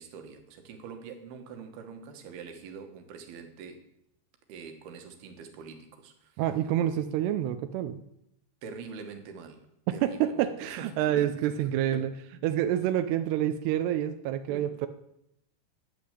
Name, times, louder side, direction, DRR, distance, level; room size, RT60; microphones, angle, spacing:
voice 1, 0.0-3.9 4.5-6.4 8.6-11.5 11.9-12.0 14.5-14.7, right 5 dB, 65° right, 5 dB, 3.1 m, -44 dB
voice 2, 6.4-8.0 9.9-12.1 12.4-14.9, right 11 dB, 85° right, 9 dB, 2.4 m, -28 dB
11.5 x 9.9 x 8.3 m, 0.80 s
omnidirectional pair, 5.6 m